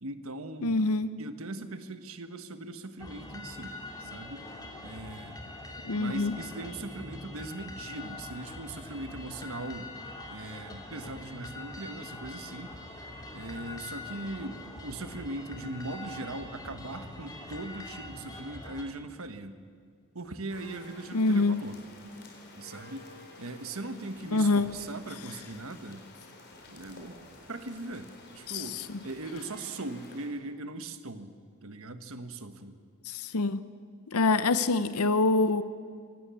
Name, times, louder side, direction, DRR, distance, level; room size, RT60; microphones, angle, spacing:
voice 1, 0.0-0.8 1.2-4.4 4.8-5.4 5.9-9.9 10.3-12.7 13.3-19.6 20.1-21.8 22.6-23.1 23.4-26.0 26.7-27.2 27.5-31.3 31.6-32.8, right 2 dB, 65° right, 9 dB, 1.3 m, -40 dB
voice 2, 0.6-1.1 5.8-6.3 21.1-21.6 24.3-24.7 28.5-29.0 33.1-33.6 34.1-35.6, left 3 dB, 85° left, 13 dB, 0.8 m, -25 dB
sound 1, 3.0-18.8, left 2 dB, 15° left, 2.7 m, -43 dB
sound 2, 20.5-30.3, left 2 dB, 50° left, 4.3 m, -51 dB
25.0 x 18.0 x 7.1 m, 2.1 s
head